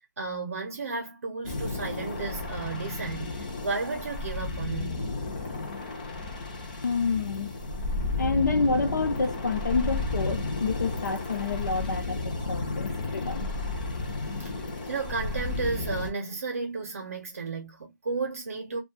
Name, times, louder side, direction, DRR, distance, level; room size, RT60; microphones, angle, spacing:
voice 1, 0.2-3.3 3.6-5.0 14.4-14.5 14.9-18.8, right 4 dB, 50° right, 0.7 m, -33 dB
sound 1, 1.4-16.1, left 2 dB, 25° left, 0.5 m, -33 dB
voice 2, 6.8-7.6 7.9-13.5, left 4 dB, 65° left, 0.7 m, -28 dB
2.2 x 2.2 x 2.6 m
hypercardioid pair, 175°, 10 cm